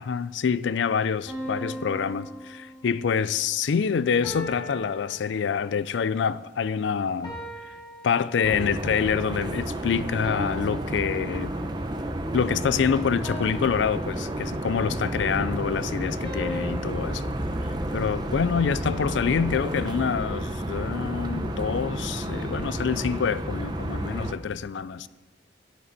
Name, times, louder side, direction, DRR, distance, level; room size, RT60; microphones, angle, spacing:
voice 1, 0.0-7.4 8.0-11.5 12.3-17.3 17.9-25.1, left 6 dB, 70° left, 0.4 m, -26 dB
sound 1, 1.3-3.2 4.2-5.9 7.2-8.8 10.2-11.9 13.2-14.9 16.2-18.6, equal, 20° left, 4.4 m, -40 dB
sound 2, 8.4-24.3, right 1 dB, 20° right, 0.8 m, -31 dB
12.5 x 11.5 x 4.1 m
head